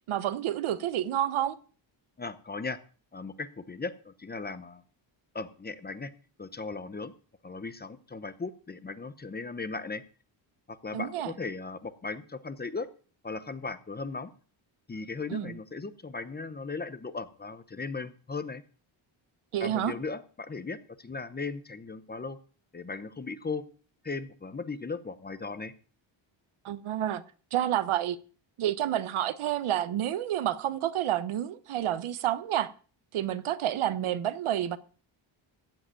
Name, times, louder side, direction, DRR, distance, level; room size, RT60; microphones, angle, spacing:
voice 1, 0.1-1.6 10.9-11.3 15.3-15.5 19.5-19.9 26.6-27.2 27.5-28.2 28.6-32.7 33.1-34.8, right 11 dB, 80° right, 1.0 m, -29 dB
voice 2, 2.2-2.8 3.1-4.8 5.3-6.1 6.4-7.1 7.4-10.0 10.7-12.9 13.2-14.3 14.9-18.6 19.6-22.4 22.7-23.7 24.0-25.7, left 4 dB, 20° left, 0.7 m, -37 dB
15.0 x 5.0 x 9.0 m
wide cardioid pair, 145°, 49 cm